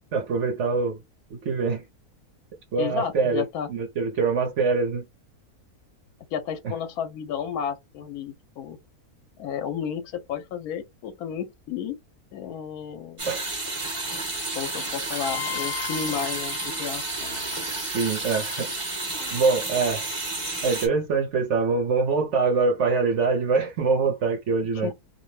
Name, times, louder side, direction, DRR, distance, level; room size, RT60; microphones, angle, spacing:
voice 1, 0.1-1.0 1.3-1.8 2.7-5.0 13.2-13.4 17.9-18.7 19.3-20.0 20.6-24.9, right 4 dB, 60° right, 0.9 m, -24 dB
voice 2, 2.8-3.7 6.3-8.8 9.4-12.0 12.3-13.3 14.5-17.0 24.7-24.9, left 8 dB, 80° left, 1.1 m, -32 dB
sound 1, 13.2-20.9, right 2 dB, 25° right, 0.8 m, -31 dB
sound 2, 14.8-17.9 19.2-19.8, left 11 dB, 65° left, 0.7 m, -38 dB
2.6 x 2.1 x 3.1 m
omnidirectional pair, 1.6 m